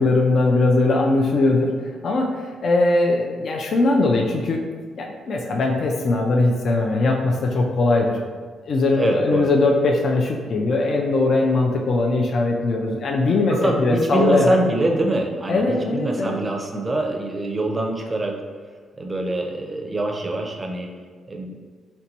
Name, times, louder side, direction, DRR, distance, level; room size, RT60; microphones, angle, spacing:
voice 1, 0.0-1.8 2.0-4.6 5.0-8.2 8.6-14.6 15.5-16.4, left 2 dB, 55° left, 1 dB, 0.4 m, -20 dB
voice 2, 8.9-9.5 13.6-18.4 19.0-20.9 21.3-21.6, right 2 dB, 20° right, 1 dB, 0.5 m, -24 dB
3.9 x 2.2 x 2.8 m, 1.5 s
cardioid pair, 95°, 0 cm